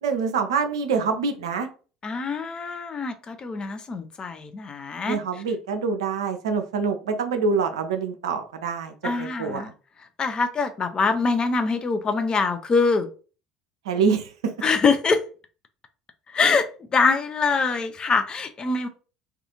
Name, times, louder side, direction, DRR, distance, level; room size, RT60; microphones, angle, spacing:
voice 1, 0.0-1.7 5.1-9.6 13.9-14.3, right 5 dB, 70° right, 6 dB, 0.4 m, -25 dB
voice 2, 2.0-5.2 9.0-9.7 10.2-13.1 14.6-15.2 16.3-18.9, left 4 dB, 30° left, 8 dB, 0.4 m, -24 dB
2.4 x 2.3 x 2.8 m, 0.37 s
figure-of-eight pair, 65°, 3 cm